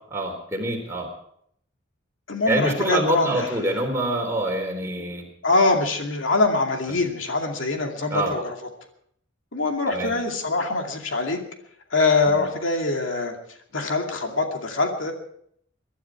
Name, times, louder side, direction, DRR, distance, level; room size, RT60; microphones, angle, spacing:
voice 1, 0.1-1.1 2.5-5.2 6.9-7.0 8.1-8.3 9.9-10.1 12.3-12.4, right 1 dB, 15° right, 1 dB, 3.7 m, -25 dB
voice 2, 2.3-3.5 5.4-8.5 9.5-11.4 11.9-13.3 13.7-15.1, left 3 dB, 85° left, 2 dB, 2.5 m, -23 dB
23.0 x 12.0 x 4.8 m, 0.67 s
head